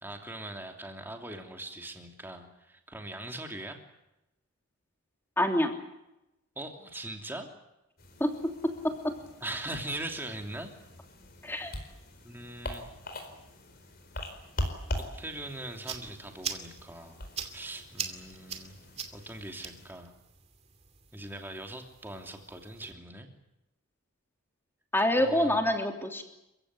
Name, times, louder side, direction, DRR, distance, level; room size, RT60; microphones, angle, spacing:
voice 1, 0.0-3.8 6.6-7.5 9.4-10.7 12.2-12.9 15.1-17.2 17.5-18.8 19.1-20.1 21.1-23.3 25.2-25.6, right 1 dB, 10° right, 3 dB, 3.0 m, -41 dB
voice 2, 5.4-5.7 8.2-9.1 11.4-11.7 24.9-26.2, left 1 dB, 10° left, 4 dB, 3.1 m, -27 dB
sound 1, 8.0-19.9, left 1 dB, 40° left, 4.5 m, -42 dB
sound 2, 15.5-22.9, right 7 dB, 30° right, 2.5 m, -43 dB
29.5 x 16.0 x 9.7 m, 0.90 s
head